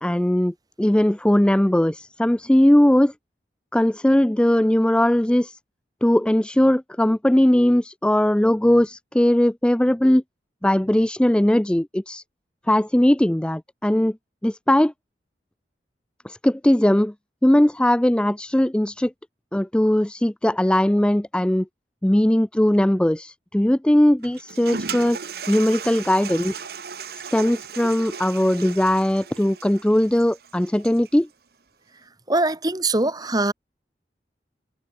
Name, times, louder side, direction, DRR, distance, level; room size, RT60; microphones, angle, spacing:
voice 1, 0.0-3.1 3.7-5.6 6.0-10.2 10.6-12.2 12.7-14.2 14.4-14.9 16.2-17.1 17.4-19.1 19.5-21.7 22.0-25.2 25.5-26.7 27.3-31.3, left 1 dB, 5° left, 0.3 m, -19 dB
Toilet flush, 24.2-31.2, right 6 dB, 60° right, 1.2 m, -36 dB
voice 2, 32.3-33.5, right 2 dB, 20° right, 1.9 m, -22 dB
head